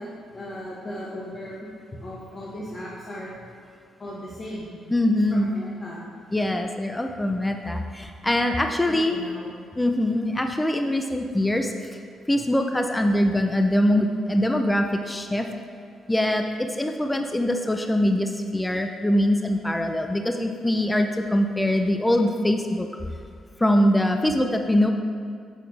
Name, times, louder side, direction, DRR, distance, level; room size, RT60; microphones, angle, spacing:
voice 1, 0.0-3.4 4.0-4.8 5.3-6.0 8.6-9.6, equal, 35° left, -7 dB, 1.6 m, -37 dB
voice 2, 4.9-5.5 6.3-9.2 9.8-11.7 12.3-15.5 16.1-22.9 23.6-24.9, left 1 dB, 10° left, 5 dB, 0.6 m, -23 dB
8.2 x 7.9 x 3.5 m, 2.3 s
hypercardioid pair, 45°, 0 cm